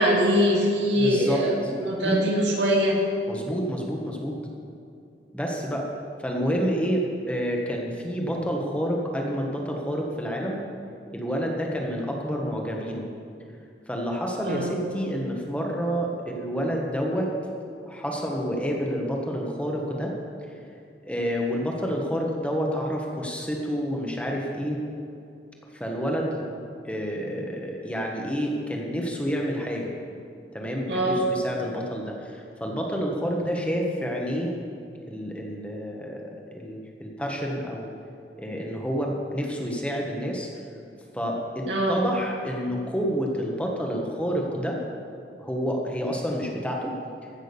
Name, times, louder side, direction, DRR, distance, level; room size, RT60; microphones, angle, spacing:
voice 1, 0.0-1.5 1.8-3.0 14.4-14.8 30.9-31.3 41.7-42.0, equal, 85° right, -2 dB, 2.5 m, -22 dB
voice 2, 1.0-1.7 2.0-2.5 3.3-4.4 5.3-5.9 6.2-10.6 11.1-13.1 13.9-17.3 17.9-20.1 21.0-24.8 25.8-26.5 26.8-29.9 30.5-34.5 35.1-37.9 38.4-40.5 41.1-44.8 45.4-46.9, equal, 5° left, -1 dB, 1.4 m, -29 dB
15.0 x 6.3 x 6.9 m, 2.5 s
head